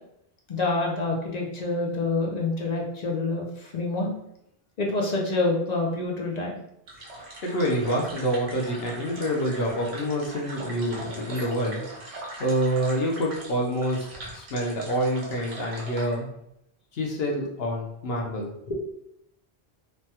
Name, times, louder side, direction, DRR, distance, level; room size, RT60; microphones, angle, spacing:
voice 1, 0.5-4.1 4.8-6.6 18.7-18.8, left 2 dB, 50° left, -1 dB, 0.6 m, -27 dB
sound 1, 6.9-16.1, right 1 dB, 80° right, 1.1 m, -41 dB
voice 2, 7.1-11.8 12.4-16.3 16.9-18.5, equal, 70° left, 0 dB, 0.9 m, -27 dB
3.2 x 2.2 x 2.8 m, 0.77 s
omnidirectional pair, 1.1 m